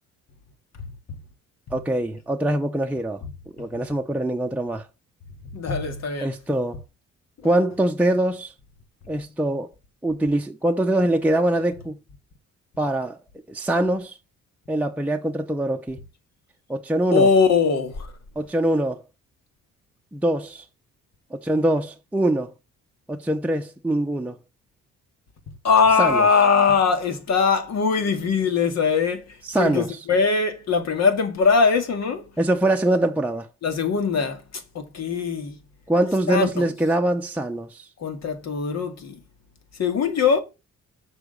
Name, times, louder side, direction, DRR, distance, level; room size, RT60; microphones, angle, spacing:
voice 1, 1.7-3.2 3.6-4.9 6.2-6.8 7.4-8.5 9.1-9.7 10.0-12.0 12.8-13.2 13.5-14.2 14.7-16.0 16.7-17.3 18.4-19.0 20.1-20.6 21.3-22.5 23.1-24.4 26.0-26.3 29.5-30.0 32.4-33.5 35.9-37.9, right 1 dB, 5° right, 0.8 m, -23 dB
voice 2, 5.5-6.4 17.1-18.1 25.6-32.3 33.6-35.5 36.3-36.7 38.0-39.2 39.8-40.4, left 5 dB, 60° left, 2.3 m, -21 dB
6.8 x 4.9 x 6.6 m
cardioid pair, 90°, 30 cm